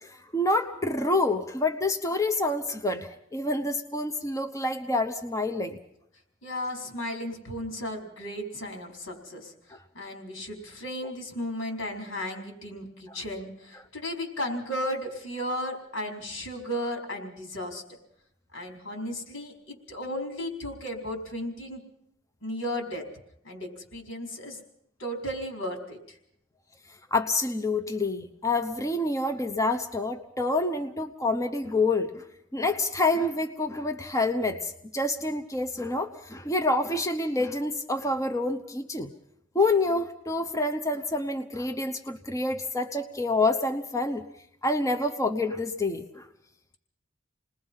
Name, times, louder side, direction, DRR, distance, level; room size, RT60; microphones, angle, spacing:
voice 1, 0.0-5.8 9.7-9.8 13.1-13.2 27.1-32.2 32.5-39.1 39.5-44.2 44.6-46.3, left 2 dB, 15° left, 6 dB, 0.9 m, -27 dB
voice 2, 6.4-9.5 9.9-17.8 18.5-21.8 22.4-23.1 23.4-24.6 25.0-26.2, equal, 75° left, 3 dB, 4.9 m, -35 dB
28.5 x 20.0 x 5.7 m, 0.73 s
head